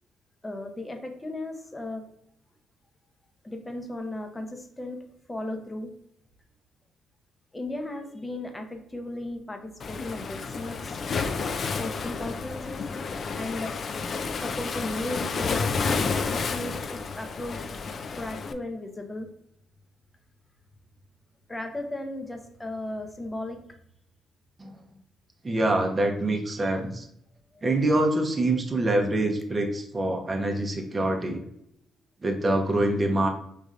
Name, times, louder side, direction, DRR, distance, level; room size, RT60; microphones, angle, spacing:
voice 1, 0.4-2.0 3.4-5.9 7.5-11.0 11.7-12.8 13.4-13.7 14.4-15.8 16.3-17.7 18.2-19.3 21.5-23.6 27.5-27.6, left 1 dB, 15° left, 4 dB, 0.7 m, -36 dB
Waves surf, 9.8-18.5, left 4 dB, 50° left, 0.4 m, -30 dB
voice 2, 25.4-27.1 27.6-31.4 32.2-33.3, right 1 dB, 25° right, 3 dB, 0.7 m, -25 dB
5.1 x 3.2 x 2.4 m, 0.73 s
cardioid pair, 90°, 0 cm